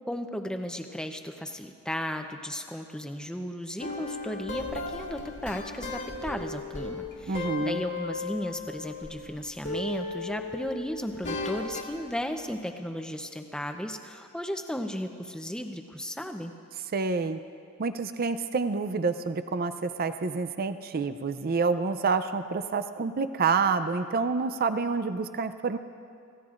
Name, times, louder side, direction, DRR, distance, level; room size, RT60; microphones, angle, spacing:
voice 1, 0.0-16.5, equal, 5° left, 5 dB, 0.7 m, -35 dB
sound 1, 3.8-9.3 9.6-12.0, left 3 dB, 55° left, 2.0 m, -36 dB
voice 2, 7.3-7.8 16.9-17.4 17.8-25.8, right 4 dB, 40° right, 11 dB, 0.5 m, -28 dB
27.0 x 16.0 x 2.5 m, 2.5 s
head